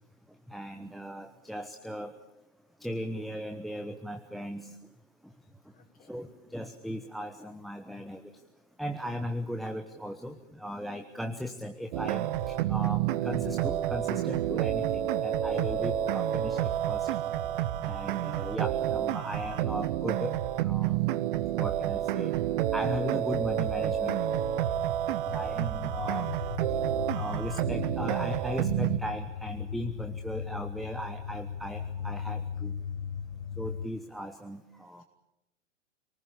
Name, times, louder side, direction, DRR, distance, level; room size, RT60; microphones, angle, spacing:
voice 1, 0.5-2.1 2.8-4.7 6.1-8.3 8.8-17.1 17.8-20.3 20.6-21.0 21.6-22.3 22.7-24.2 25.3-26.3 27.1-32.7 33.6-35.0, equal, ahead, 7 dB, 1.1 m, -37 dB
voice 2, 5.7-6.4 25.1-25.6 35.0-35.1, left 6 dB, 20° left, 1 dB, 6.0 m, -59 dB
sound 1, 11.9-29.0, right 12 dB, 45° right, 1.3 m, -29 dB
sound 2, 24.0-33.9, left 7 dB, 50° left, 1.2 m, -38 dB
27.5 x 19.5 x 8.6 m, 0.89 s
figure-of-eight pair, 110°, 38 cm